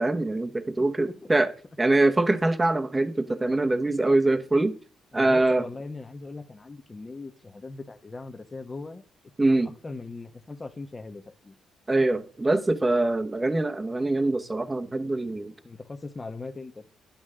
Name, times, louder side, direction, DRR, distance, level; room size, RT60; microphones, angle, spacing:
voice 1, 0.0-1.5 1.8-4.7 5.1-5.7 9.4-9.7 11.9-15.5, right 2 dB, 15° right, 1.1 m, -23 dB
voice 2, 1.0-1.3 5.1-9.0 9.5-9.6 9.8-11.5 15.6-16.9, left 3 dB, 25° left, 1.3 m, -39 dB
11.0 x 8.7 x 3.7 m
cardioid pair, 90°, 0 cm